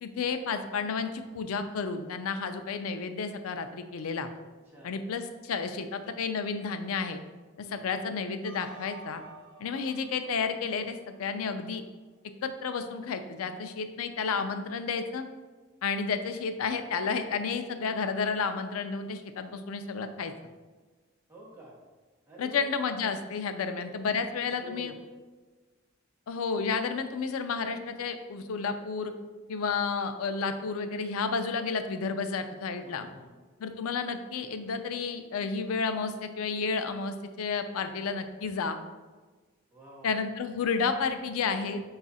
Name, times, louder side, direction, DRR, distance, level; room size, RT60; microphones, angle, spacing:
voice 1, 0.0-4.3 4.8-7.2 7.6-9.2 9.6-11.8 12.4-15.3 15.8-20.3 22.4-24.9 26.3-29.1 29.5-33.1 33.6-38.8 40.0-41.8, left 5 dB, 85° left, 8 dB, 0.4 m, -31 dB
voice 2, 4.4-4.9 7.8-7.9 21.3-21.8 22.3-22.7 23.5-23.8 24.1-24.9 32.8-33.3 39.7-40.2, equal, 10° right, -6 dB, 0.9 m, -48 dB
sound 1, 8.4-11.6, right 4 dB, 85° right, 0.6 m, -51 dB
4.8 x 2.4 x 4.0 m, 1.3 s
head